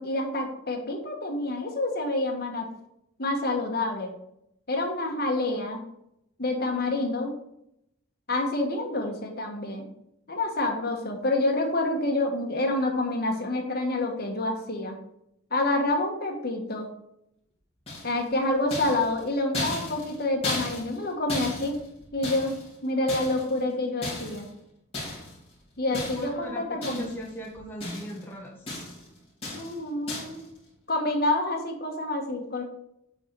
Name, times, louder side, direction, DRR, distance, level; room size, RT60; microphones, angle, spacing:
voice 1, 0.0-2.7 3.2-4.1 4.7-5.8 6.4-7.3 8.3-9.8 10.3-14.9 15.5-16.9 18.0-21.8 22.1-22.5 22.8-24.5 25.8-27.2 29.5-30.4 30.9-32.6, left 2 dB, 50° left, 1 dB, 1.4 m, -28 dB
sound 1, 17.9-18.3 18.7-21.0 21.3-22.7 23.1-23.6 24.0-24.5 24.9-25.4 25.9-26.4 26.8-27.3 27.5-28.2 28.7-29.1 29.4-29.8 30.1-30.4, left 2 dB, 30° left, 3.0 m, -35 dB
voice 2, 25.9-28.6, equal, 10° left, -2 dB, 0.9 m, -38 dB
8.2 x 3.9 x 4.7 m, 0.78 s
head